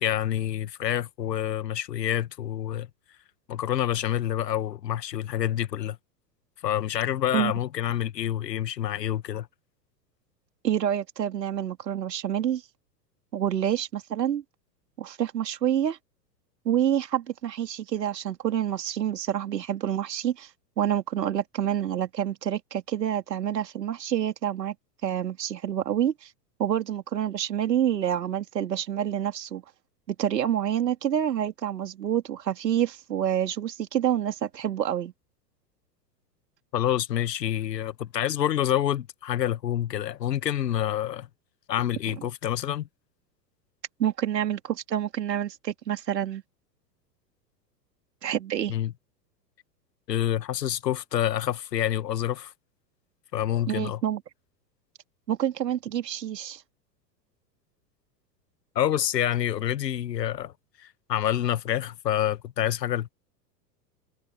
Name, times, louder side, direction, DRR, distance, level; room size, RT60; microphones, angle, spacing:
voice 1, 0.0-2.9 3.5-6.0 6.6-9.5 36.7-41.3 41.7-42.9 48.7-48.9 50.1-52.5 53.3-54.0 58.7-63.1, left 11 dB, 75° left, 1.5 m, -27 dB
voice 2, 10.6-12.6 13.3-14.4 15.0-16.0 16.6-20.5 20.8-24.7 25.0-26.3 26.6-29.6 30.1-35.1 42.1-42.2 44.0-46.4 48.2-48.7 53.7-54.2 55.3-56.6, right 10 dB, 75° right, 3.0 m, -27 dB
hypercardioid pair, 100°, 49 cm